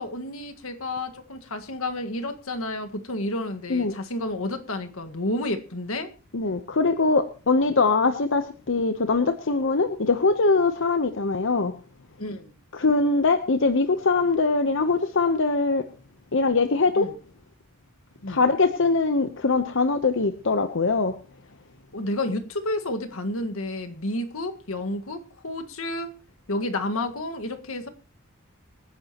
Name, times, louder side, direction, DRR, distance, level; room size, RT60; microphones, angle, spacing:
voice 1, 0.0-6.1 12.2-12.5 17.0-17.1 18.2-18.4 21.9-26.2 26.5-27.9, left 1 dB, 80° left, 1.7 m, -30 dB
voice 2, 6.3-11.7 12.7-15.8 16.3-17.1 18.3-21.1, left 3 dB, 60° left, 0.9 m, -22 dB
25.5 x 10.5 x 3.0 m
head